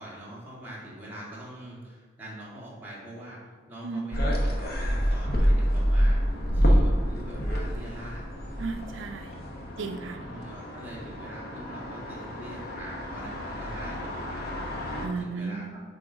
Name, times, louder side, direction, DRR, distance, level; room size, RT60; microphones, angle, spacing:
voice 1, 0.0-6.2 6.5-8.2 10.2-14.5 15.0-15.7, right 1 dB, 10° right, -6 dB, 1.7 m, -43 dB
voice 2, 3.8-4.2 8.6-9.3 9.8-10.2 15.0-15.7, right 4 dB, 80° right, 6 dB, 0.4 m, -34 dB
sound 1, 4.1-15.1, equal, 55° left, 1.0 m, -28 dB
6.0 x 3.9 x 4.9 m, 1.5 s
head